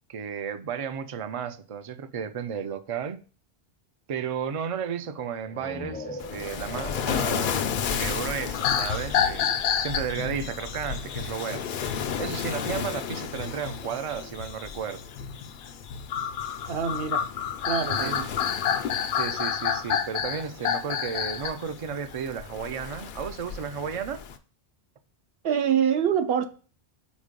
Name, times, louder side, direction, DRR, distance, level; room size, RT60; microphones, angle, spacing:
voice 1, 0.1-3.2 4.1-9.5 9.8-11.7 12.2-15.0 18.0-18.2 19.1-24.2, right 7 dB, 45° right, 0.4 m, -33 dB
sound 1, 5.4-9.1, left 1 dB, 10° left, 0.5 m, -42 dB
Waves surf, 6.2-24.4, left 7 dB, 60° left, 0.6 m, -35 dB
sound 2, 8.5-21.5 21.9-22.2, left 8 dB, 90° left, 0.9 m, -30 dB
voice 2, 16.7-17.2 17.6-18.3 25.4-26.4, right 8 dB, 70° right, 0.9 m, -25 dB
5.2 x 4.4 x 5.1 m
omnidirectional pair, 1.1 m